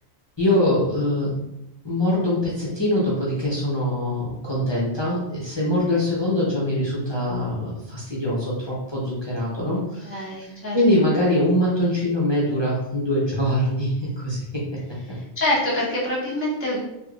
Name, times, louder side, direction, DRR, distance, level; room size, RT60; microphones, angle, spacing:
voice 1, 0.4-1.4 1.8-14.6, left 1 dB, 30° left, -7 dB, 0.6 m, -23 dB
voice 2, 10.0-10.8 15.1-16.8, left 1 dB, 15° right, -6 dB, 0.5 m, -26 dB
3.3 x 3.1 x 2.4 m, 0.89 s
omnidirectional pair, 1.3 m